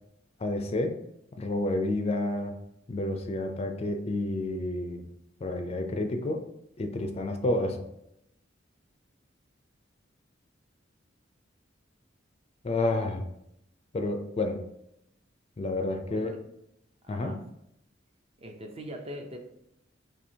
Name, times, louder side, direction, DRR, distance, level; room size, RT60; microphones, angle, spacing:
voice 1, 0.4-0.9 1.4-2.5 2.9-5.0 5.4-6.4 6.8-7.8 12.6-13.2 13.9-14.6 15.6-16.3 17.1-17.4, left 2 dB, 35° left, 5 dB, 0.4 m, -29 dB
voice 2, 16.1-16.4 17.0-17.4 18.4-19.4, equal, 30° right, 4 dB, 0.5 m, -41 dB
4.3 x 2.8 x 2.7 m, 0.80 s
head